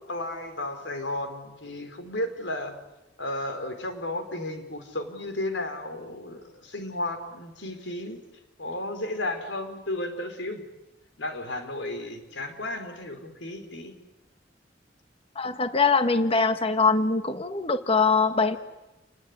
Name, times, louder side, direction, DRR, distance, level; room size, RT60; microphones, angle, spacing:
voice 1, 0.1-2.7 3.2-8.2 8.6-10.6 11.2-13.9, left 1 dB, 75° left, 7 dB, 4.8 m, -33 dB
voice 2, 15.3-18.6, left 4 dB, 30° left, 9 dB, 1.6 m, -23 dB
29.5 x 20.5 x 9.9 m, 0.97 s
head